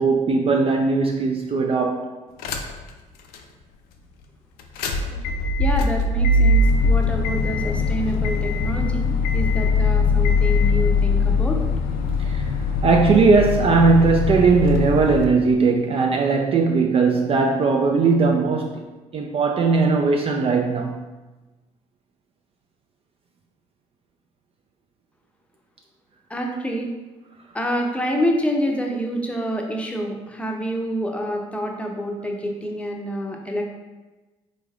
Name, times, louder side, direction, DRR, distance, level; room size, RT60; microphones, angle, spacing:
voice 1, 0.0-2.1 12.2-12.5 12.8-18.8 19.1-21.0, right 4 dB, 35° right, 0.3 m, -19 dB
sound 1, 2.4-2.9 3.3-3.4 4.6-15.2, left 3 dB, 70° left, 0.4 m, -21 dB
voice 2, 5.6-11.6 26.3-26.9 27.5-33.7, equal, 10° left, 0.7 m, -27 dB
3.7 x 3.1 x 2.4 m
hypercardioid pair, 60°, 16 cm